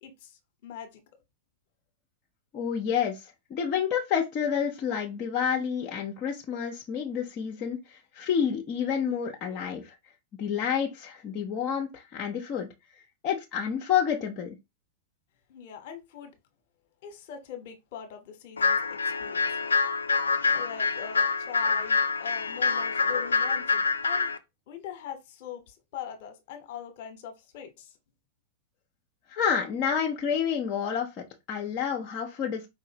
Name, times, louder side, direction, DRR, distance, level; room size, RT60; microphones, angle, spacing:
voice 1, 0.0-1.0 15.5-16.3 17.0-19.5 20.5-24.3 24.7-27.9, left 9 dB, 55° left, 1.2 m, -42 dB
voice 2, 2.5-9.9 10.4-12.7 13.2-14.6 29.3-32.7, left 7 dB, 40° left, 0.8 m, -29 dB
sound 1, 18.6-24.4, left 4 dB, 85° left, 0.4 m, -26 dB
4.8 x 3.1 x 2.9 m
figure-of-eight pair, 95°, 0 cm